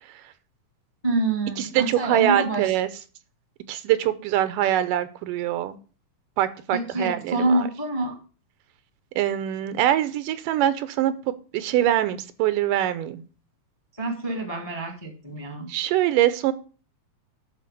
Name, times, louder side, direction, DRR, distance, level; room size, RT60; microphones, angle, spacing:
voice 1, 1.0-2.7 6.7-8.1 14.0-15.7, right 2 dB, 15° left, 4 dB, 1.1 m, -26 dB
voice 2, 1.6-2.9 3.7-5.8 6.4-7.6 9.2-13.2 15.7-16.5, right 12 dB, 85° right, 13 dB, 2.4 m, -23 dB
11.5 x 4.3 x 6.8 m, 0.37 s
omnidirectional pair, 3.7 m